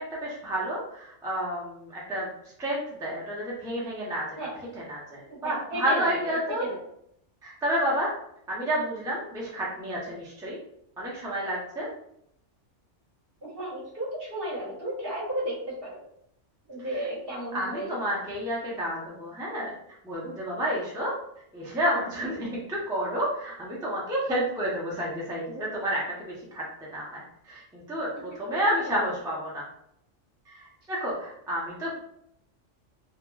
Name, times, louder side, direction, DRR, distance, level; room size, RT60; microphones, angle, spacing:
voice 1, 0.0-2.3 2.6-4.4 4.7-6.7 7.4-8.1 8.5-10.6 11.0-11.9 17.5-19.7 20.0-21.1 21.5-29.6 30.5-32.0, equal, 5° right, -5 dB, 0.6 m, -30 dB
voice 2, 5.3-6.8 13.4-16.0 16.7-18.0 28.7-28.8, right 1 dB, 50° right, -6 dB, 1.4 m, -34 dB
2.9 x 2.9 x 2.3 m, 0.73 s
omnidirectional pair, 1.2 m